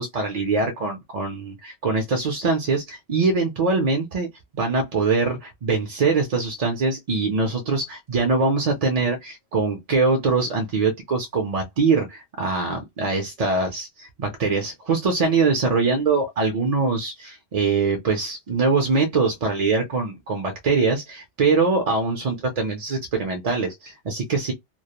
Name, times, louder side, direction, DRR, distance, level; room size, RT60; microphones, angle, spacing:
voice 1, 0.0-4.3 4.5-24.5, right 4 dB, 50° right, 0.5 m, -23 dB
2.2 x 2.0 x 2.8 m
omnidirectional pair, 1.1 m